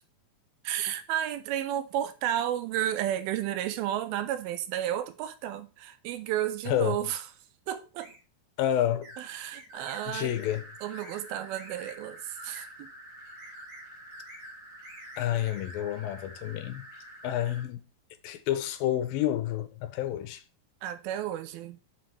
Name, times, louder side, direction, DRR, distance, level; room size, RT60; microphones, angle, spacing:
voice 1, 0.6-7.3 7.7-8.1 9.2-10.4 10.8-12.9 20.8-21.8, right 11 dB, 80° right, 2.4 m, -32 dB
voice 2, 6.7-7.0 8.6-9.1 10.1-10.6 15.2-16.9 17.2-17.8 18.2-20.4, left 12 dB, 80° left, 2.3 m, -29 dB
sound 1, 8.0-8.2 9.0-9.2 9.5-10.0 10.4-10.6 10.9-11.2 11.5-11.9 12.3-12.7 13.2-13.8 14.1-14.6 14.8-15.8, equal, 50° right, 3.5 m, -48 dB
sound 2, 9.7-17.6, right 1 dB, 30° right, 2.6 m, -48 dB
7.3 x 6.2 x 3.3 m
omnidirectional pair, 4.3 m